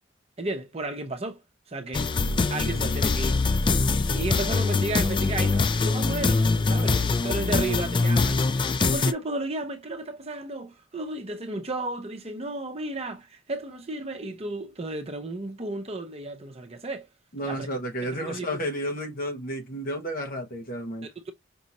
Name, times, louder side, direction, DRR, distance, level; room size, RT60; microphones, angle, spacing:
voice 1, 0.4-1.4 1.7-2.1 2.5-3.8 4.1-17.1 17.4-17.7 18.0-18.5 21.0-21.3, right 2 dB, 30° right, 0.8 m, -33 dB
sound 1, 1.9-9.1, left 3 dB, 25° left, 0.3 m, -23 dB
voice 2, 17.3-21.1, equal, 45° left, 1.0 m, -32 dB
5.4 x 2.6 x 3.0 m
head